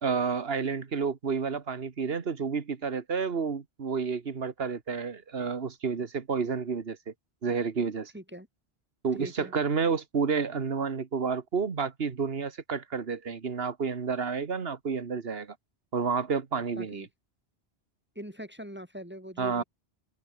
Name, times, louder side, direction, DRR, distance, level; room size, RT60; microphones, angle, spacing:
voice 1, 0.0-7.1 7.4-8.1 9.0-15.5 15.9-17.1 19.4-19.6, right 5 dB, 65° right, 1.7 m, -30 dB
voice 2, 8.1-8.5 9.2-9.5 16.8-17.1 18.1-19.6, equal, 10° right, 5.0 m, -42 dB
omnidirectional pair, 1.1 m